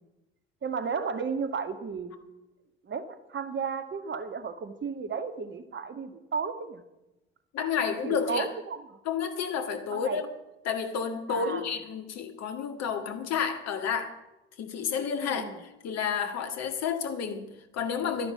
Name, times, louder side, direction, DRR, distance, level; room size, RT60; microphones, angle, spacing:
voice 1, 0.6-2.1 2.8-6.8 8.0-8.8 9.9-10.2 11.3-11.7 15.2-15.6, right 5 dB, 35° right, 10 dB, 1.7 m, -33 dB
voice 2, 7.5-8.5 9.1-10.3 10.6-14.1 14.6-15.5 15.8-18.3, left 6 dB, 55° left, 7 dB, 2.0 m, -30 dB
12.5 x 11.0 x 7.9 m, 0.94 s
figure-of-eight pair, 55°, 31 cm